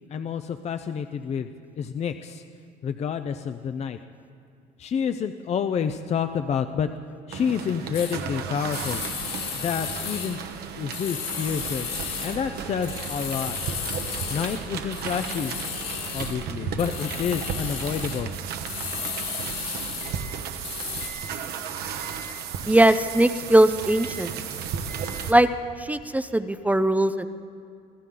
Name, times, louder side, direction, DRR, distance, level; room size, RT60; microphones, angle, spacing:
voice 1, 0.1-1.5 1.8-2.4 2.8-4.0 4.8-6.9 7.3-9.0 9.5-10.4 10.7-11.9 12.2-13.6 14.3-15.6 16.1-18.3, left 7 dB, 40° left, 9 dB, 0.5 m, -28 dB
sound 1, 7.3-25.3, right 7 dB, 70° right, 1.1 m, -34 dB
sound 2, 7.9-8.2 8.7-10.6 10.9-12.4 12.8-14.7 14.9-16.5 16.8-20.3 20.5-21.1, left 7 dB, 80° left, 2.6 m, -34 dB
voice 2, 22.7-24.3 25.3-25.5 25.8-27.3, right 1 dB, 10° right, 10 dB, 0.5 m, -20 dB
25.0 x 15.0 x 3.8 m, 2.4 s
cardioid pair, 110°, 17 cm